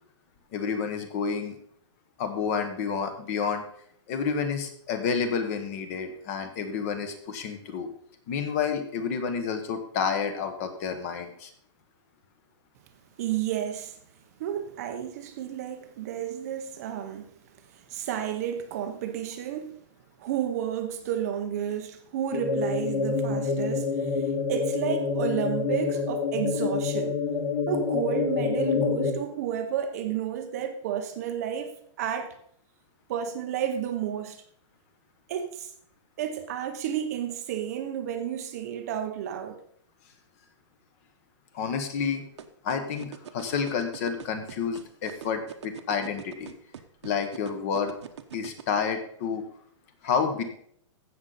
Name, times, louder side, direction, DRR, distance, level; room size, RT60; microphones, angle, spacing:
voice 1, 0.5-1.6 2.2-3.6 4.1-7.9 8.3-11.5 41.5-42.2 42.6-46.5 47.0-47.9 48.3-49.4 50.0-50.4, left 6 dB, 30° left, 1.2 m, -29 dB
voice 2, 13.2-14.0 14.4-17.3 17.6-19.8 20.2-27.2 27.7-32.3 33.1-34.4 35.3-35.7 36.2-39.6, right 9 dB, 30° right, 0.7 m, -31 dB
sound 1, 22.3-29.1, left 5 dB, 70° left, 2.3 m, -27 dB
sound 2, 42.4-48.6, right 10 dB, 65° right, 1.1 m, -41 dB
15.5 x 6.4 x 4.1 m
hypercardioid pair, 175°, 16 cm